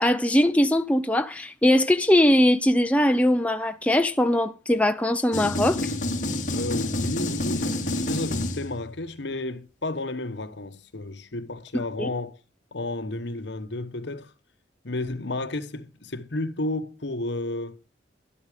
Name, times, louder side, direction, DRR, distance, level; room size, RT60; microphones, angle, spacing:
voice 1, 0.0-5.8 11.7-12.1, left 1 dB, 5° left, 0.5 m, -21 dB
sound 1, 5.3-9.0, left 1 dB, 40° left, 2.2 m, -28 dB
voice 2, 6.5-12.4 12.7-14.3 14.8-17.8, left 2 dB, 70° left, 1.1 m, -32 dB
12.0 x 12.0 x 5.1 m
head